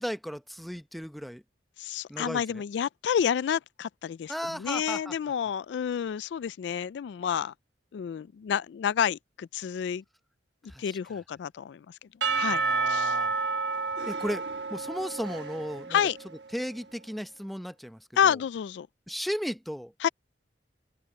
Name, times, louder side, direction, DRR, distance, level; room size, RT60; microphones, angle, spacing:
voice 1, 0.0-1.4 2.1-2.6 4.3-5.1 10.7-11.0 12.5-13.3 14.1-14.4 14.7-16.0 16.5-18.4 19.1-19.9, equal, ahead, 0.7 m, -35 dB
voice 2, 1.8-7.5 7.9-10.0 10.8-13.2 15.9-16.2 18.2-18.9 20.0-20.1, left 8 dB, 70° left, 0.3 m, -29 dB
Percussion / Church bell, 12.2-16.3, right 4 dB, 65° right, 1.3 m, -30 dB
open air
head